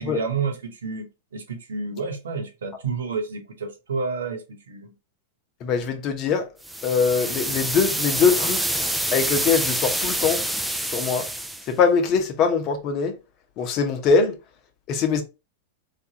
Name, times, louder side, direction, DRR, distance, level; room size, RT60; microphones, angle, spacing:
voice 1, 0.0-4.9, right 5 dB, 85° right, 1.0 m, -30 dB
voice 2, 5.6-6.5 6.8-8.8 9.1-10.4 10.9-11.2 11.7-13.1 13.6-14.3 14.9-15.2, left 5 dB, 40° left, 0.8 m, -22 dB
sound 1, 6.6-11.7, right 1 dB, 5° right, 0.3 m, -26 dB
3.2 x 2.5 x 2.8 m
hypercardioid pair, 115°, 0 cm